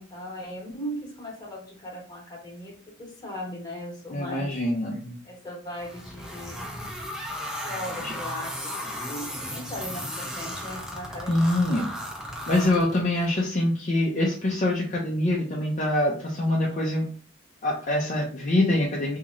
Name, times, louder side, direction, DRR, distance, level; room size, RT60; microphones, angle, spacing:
voice 1, 0.0-4.5 5.2-6.7 7.6-11.5, equal, 20° left, -2 dB, 1.1 m, -38 dB
voice 2, 4.1-5.2 8.0-8.1 11.3-11.9 12.5-17.1 17.6-19.2, left 1 dB, 40° left, -3 dB, 0.5 m, -24 dB
sound 1, 5.8-13.3, equal, 5° right, 0.6 m, -35 dB
3.0 x 2.8 x 2.5 m, 0.43 s
head